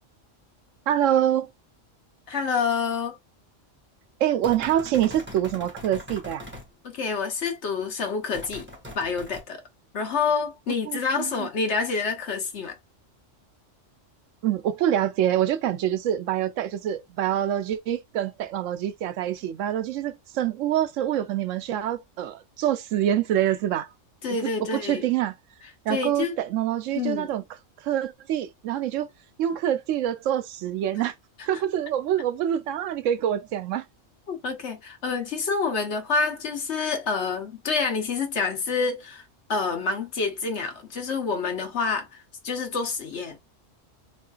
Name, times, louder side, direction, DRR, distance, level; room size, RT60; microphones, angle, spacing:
voice 1, 0.9-1.5 4.2-6.4 10.9-11.5 14.4-23.9 24.4-25.4 25.9-27.4 27.8-29.1 29.4-31.1 31.5-33.8, right 11 dB, 80° right, 0.9 m, -26 dB
voice 2, 2.3-3.2 6.8-8.7 8.9-9.6 9.9-12.7 24.2-25.1 25.9-26.3 26.9-27.3 34.3-39.2 39.5-43.4, left 5 dB, 65° left, 1.2 m, -27 dB
sound 1, 4.4-6.7 8.3-9.4, left 1 dB, 10° right, 1.4 m, -41 dB
3.7 x 3.1 x 2.3 m
omnidirectional pair, 1.3 m